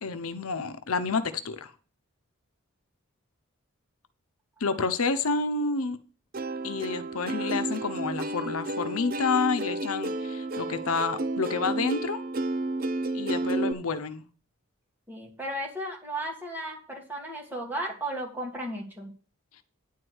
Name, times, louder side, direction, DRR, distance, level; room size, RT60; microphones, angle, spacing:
voice 1, 0.0-1.7 4.6-6.0 6.6-12.2 13.1-14.2, left 4 dB, 85° left, 10 dB, 0.8 m, -29 dB
Plucked string instrument, 6.3-13.7, right 2 dB, 40° right, 0.6 m, -31 dB
voice 2, 15.1-19.1, right 1 dB, 10° right, -1 dB, 2.6 m, -35 dB
10.0 x 4.7 x 8.0 m, 0.38 s
head